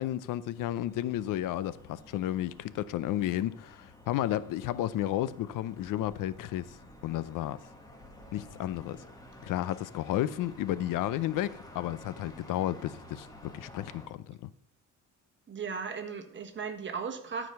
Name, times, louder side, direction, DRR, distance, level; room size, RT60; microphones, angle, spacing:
voice 1, 0.0-6.8 7.0-7.7 8.3-9.0 9.4-13.3 13.5-14.5, left 13 dB, 80° left, 0.6 m, -32 dB
sound 1, 0.5-14.1, left 1 dB, 10° left, 1.5 m, -52 dB
voice 2, 15.5-17.5, right 5 dB, 35° right, 1.5 m, -36 dB
13.0 x 5.0 x 5.7 m
cardioid pair, 135°, 32 cm